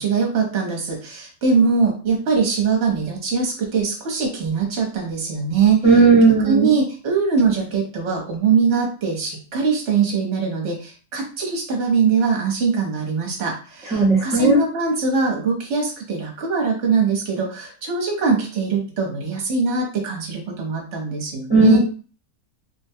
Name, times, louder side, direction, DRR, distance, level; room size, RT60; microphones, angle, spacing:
voice 1, 0.0-5.9 6.4-21.8, right 5 dB, 55° right, 0 dB, 1.1 m, -22 dB
voice 2, 5.8-6.7 13.9-14.6 21.5-21.8, right 3 dB, 5° right, -5 dB, 0.5 m, -14 dB
3.3 x 2.2 x 2.7 m, 0.38 s
omnidirectional pair, 1.6 m